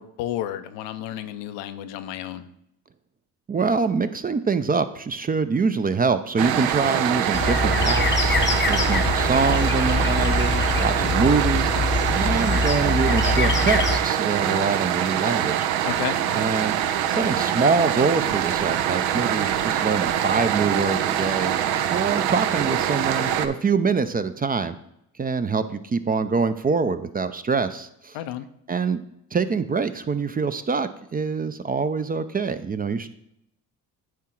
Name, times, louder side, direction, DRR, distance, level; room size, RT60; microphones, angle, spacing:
voice 1, 0.0-2.5 15.8-16.2 28.1-28.5, left 12 dB, 80° left, 10 dB, 0.7 m, -32 dB
voice 2, 3.5-8.4 8.7-11.7 12.1-15.7 16.4-16.7 17.1-21.5 21.9-24.8 25.2-28.2 28.7-29.0 29.3-33.1, right 4 dB, 20° right, 11 dB, 0.4 m, -24 dB
sound 1, 6.4-23.5, right 10 dB, 85° right, 0.6 m, -24 dB
sound 2, 7.3-14.0, left 3 dB, 25° left, 0.7 m, -24 dB
9.4 x 3.7 x 4.5 m, 0.78 s
hypercardioid pair, 60°, 42 cm